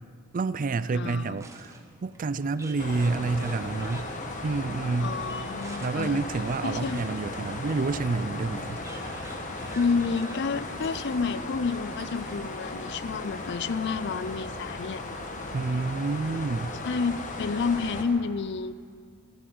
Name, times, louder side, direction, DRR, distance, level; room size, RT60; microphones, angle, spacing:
voice 1, 0.3-4.1 4.4-5.2 5.8-8.8 15.5-16.7, right 3 dB, 40° right, 15 dB, 0.4 m, -29 dB
voice 2, 0.9-1.4 5.0-6.2 6.6-7.0 9.7-15.0 16.8-18.7, left 5 dB, 55° left, 16 dB, 0.4 m, -29 dB
sound 1, 1.3-12.6, right 2 dB, 15° right, 1.1 m, -48 dB
sound 2, 2.8-18.0, left 2 dB, 40° left, 1.4 m, -36 dB
15.5 x 13.5 x 6.2 m, 2.1 s
head